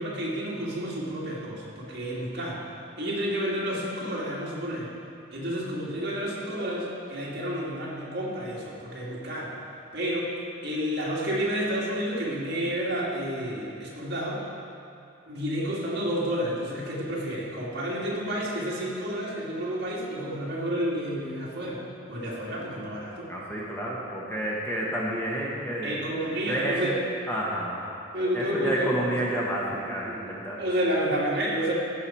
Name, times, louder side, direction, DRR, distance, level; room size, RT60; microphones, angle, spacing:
voice 1, 0.0-2.6 3.0-4.9 5.3-9.5 9.9-10.3 10.6-14.4 15.3-21.8 22.1-23.3 25.8-26.9 28.1-29.0 30.6-31.7, equal, 55° right, -5 dB, 2.0 m, -30 dB
voice 2, 23.3-26.9 27.3-27.9 28.3-30.6, right 1 dB, 10° left, -5 dB, 1.0 m, -30 dB
15.0 x 5.9 x 4.3 m, 2.5 s
head